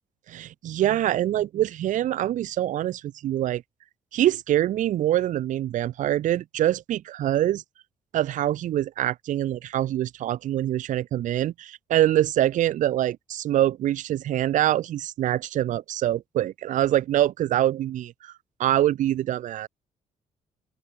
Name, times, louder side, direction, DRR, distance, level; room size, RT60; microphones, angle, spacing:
voice 1, 0.3-3.6 4.1-7.6 8.1-18.3 18.6-19.7, right 12 dB, 70° right, 0.8 m, -24 dB
open air
cardioid pair, 130°, 14 cm